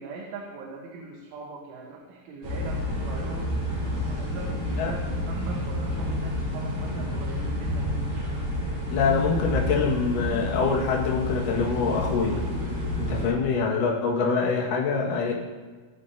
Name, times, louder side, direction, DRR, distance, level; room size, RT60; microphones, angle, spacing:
voice 1, 0.0-3.6 4.0-7.9, right 3 dB, 85° right, -1 dB, 3.7 m, -41 dB
sound 1, 2.4-13.3, left 1 dB, 45° right, 5.9 m, -29 dB
voice 2, 8.9-12.4 13.0-15.3, left 5 dB, 55° left, -2 dB, 2.9 m, -25 dB
21.5 x 9.8 x 2.8 m, 1.4 s
omnidirectional pair, 5.4 m